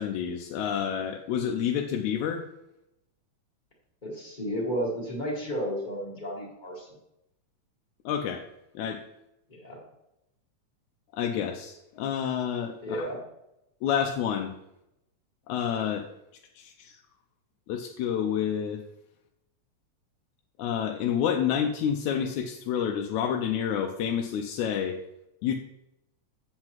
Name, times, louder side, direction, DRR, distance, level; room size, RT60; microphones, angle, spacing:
voice 1, 0.0-2.4 8.1-8.4 8.8-9.0 11.1-13.1 13.8-14.5 15.5-16.1 16.6-17.0 17.7-18.8 20.6-25.0 25.4-25.5, left 8 dB, 90° left, 3 dB, 2.0 m, -29 dB
voice 2, 4.0-6.9 9.5-9.8 12.8-13.2, equal, 20° left, -2 dB, 1.4 m, -32 dB
8.5 x 7.6 x 3.0 m, 0.86 s
omnidirectional pair, 3.3 m